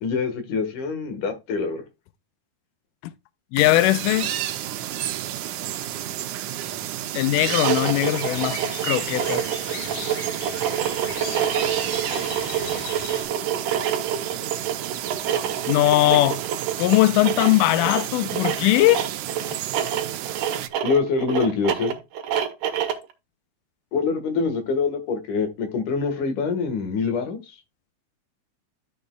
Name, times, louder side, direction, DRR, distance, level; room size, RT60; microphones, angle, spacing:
voice 1, 0.0-1.8 20.8-22.0 23.9-27.4, left 4 dB, 60° left, 2.8 m, -25 dB
voice 2, 3.5-4.3 7.1-9.4 15.7-16.4 16.8-19.0, left 17 dB, 90° left, 1.8 m, -20 dB
sound 1, 3.6-20.7, right 12 dB, 85° right, 1.7 m, -31 dB
sound 2, 7.4-23.1, right 9 dB, 65° right, 2.4 m, -27 dB
Morning Birds, 7.8-13.2, left 3 dB, 45° left, 2.9 m, -37 dB
12.0 x 6.7 x 2.3 m
omnidirectional pair, 4.4 m